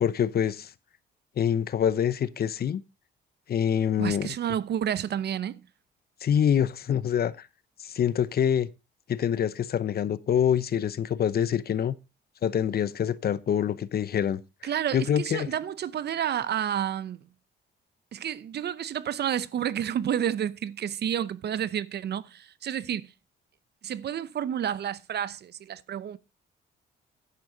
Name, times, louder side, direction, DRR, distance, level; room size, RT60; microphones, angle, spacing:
voice 1, 0.0-0.7 1.4-2.8 3.5-4.3 6.2-7.3 7.8-8.7 9.1-12.0 12.4-14.4 14.9-15.5, left 9 dB, 50° left, 0.8 m, -25 dB
voice 2, 4.0-5.6 14.6-17.2 18.1-23.1 23.8-26.2, right 9 dB, 55° right, 0.7 m, -30 dB
10.5 x 8.6 x 3.9 m
cardioid pair, 90°, 20 cm